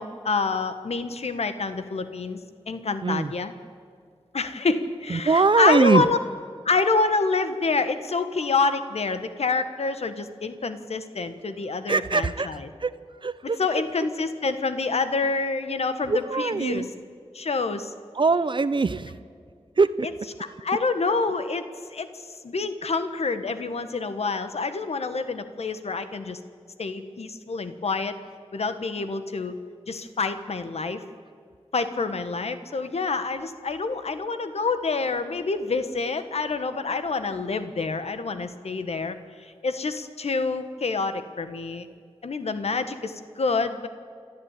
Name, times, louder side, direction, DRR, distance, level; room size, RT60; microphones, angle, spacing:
voice 1, 0.0-2.4 2.7-3.5 4.3-6.2 6.6-12.7 13.4-16.9 17.3-17.9 20.4-21.6 21.9-22.1 22.4-26.4 26.8-28.1 28.5-29.5 29.9-31.0 31.7-41.9 42.2-43.9, left 4 dB, 80° left, 10 dB, 1.4 m, -27 dB
voice 2, 5.1-6.0 11.9-12.9 13.2-13.6 16.1-16.9 18.2-19.1 19.8-20.1, right 4 dB, 50° right, 14 dB, 0.6 m, -22 dB
28.0 x 12.0 x 9.0 m, 2.1 s
wide cardioid pair, 80°, 10 cm